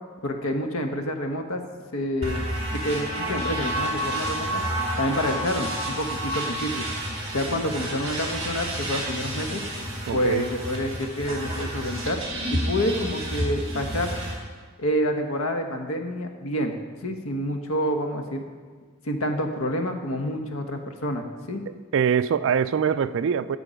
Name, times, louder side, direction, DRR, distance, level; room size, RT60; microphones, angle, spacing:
voice 1, 0.2-1.6 1.9-4.6 5.0-6.9 7.3-9.6 10.1-12.2 12.5-14.1 14.8-16.7 17.0-18.5 19.0-21.6, equal, 90° left, 5 dB, 1.1 m, -28 dB
sound 1, 2.2-14.3, right 1 dB, 30° right, 2.5 m, -30 dB
voice 2, 10.1-10.4 21.7-23.6, right 7 dB, 65° right, 15 dB, 0.3 m, -24 dB
11.0 x 6.9 x 5.1 m, 1.6 s
head